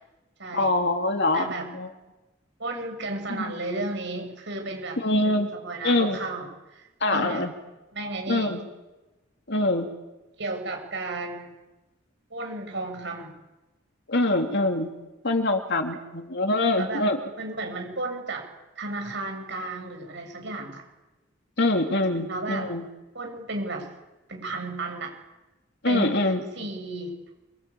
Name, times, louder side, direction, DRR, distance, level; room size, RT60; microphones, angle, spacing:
voice 1, 0.5-1.5 1.7-1.9 3.3-3.5 5.0-5.5 5.8-6.2 7.0-7.5 8.3-8.7 9.5-9.9 14.1-14.9 15.2-17.2 21.6-22.9 25.8-26.4, left 2 dB, 60° left, 4 dB, 3.0 m, -24 dB
voice 2, 1.3-1.7 2.6-5.0 5.2-7.4 7.9-8.5 10.4-11.5 12.3-13.3 16.8-17.1 17.4-18.5 18.8-20.8 22.3-22.7 23.1-23.9 24.3-25.1 25.9-27.1, right 2 dB, 65° right, 3 dB, 7.3 m, -33 dB
28.0 x 23.0 x 8.7 m, 1.1 s
head